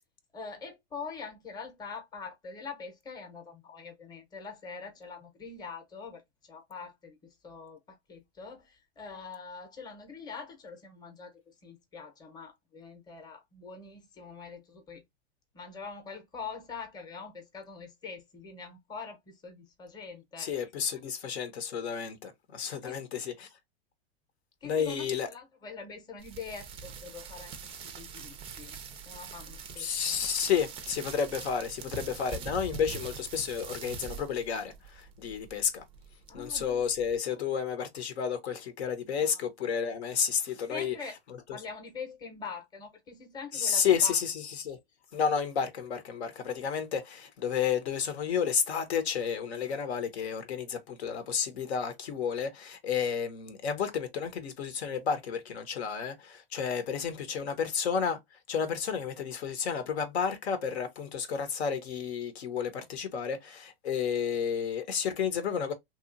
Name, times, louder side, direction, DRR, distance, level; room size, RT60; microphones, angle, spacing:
voice 1, 0.3-15.0 15.5-20.5 22.9-23.0 24.6-27.5 27.8-28.8 29.1-30.2 36.3-36.8 37.3-37.4 39.0-39.4 40.7-41.1 41.5-44.2 57.0-57.5, left 5 dB, 10° left, 0.7 m, -44 dB
voice 2, 20.4-23.5 24.6-25.3 29.8-35.8 36.3-41.0 43.5-44.8 45.1-58.2 58.5-65.7, left 7 dB, 75° left, 0.8 m, -31 dB
sound 1, 26.2-37.2, right 5 dB, 20° right, 0.4 m, -44 dB
2.8 x 2.4 x 2.5 m
hypercardioid pair, 120°, 32 cm